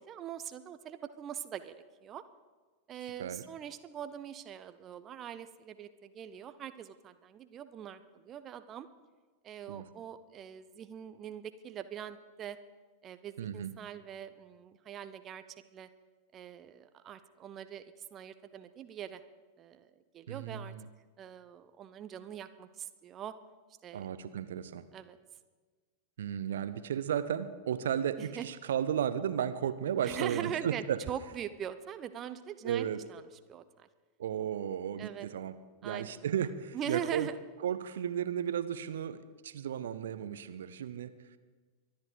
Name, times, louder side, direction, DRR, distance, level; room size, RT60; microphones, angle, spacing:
voice 1, 0.0-1.7 2.0-2.2 2.9-8.9 9.4-12.6 13.0-15.4 15.7-15.9 16.3-17.8 18.1-19.2 19.6-20.7 21.2-23.3 23.8-24.1 24.9-25.2 28.2-28.5 30.0-33.2 33.5-33.9 35.0-35.3 35.8-36.3 36.7-37.4, right 9 dB, 30° right, 11 dB, 0.7 m, -42 dB
voice 2, 13.4-13.7 20.3-20.9 23.9-24.8 26.2-31.0 32.6-33.0 34.2-35.5 35.8-37.3 37.6-41.1, right 9 dB, 60° right, 13 dB, 0.7 m, -34 dB
24.0 x 10.5 x 5.0 m, 1.4 s
figure-of-eight pair, 90°, 0 cm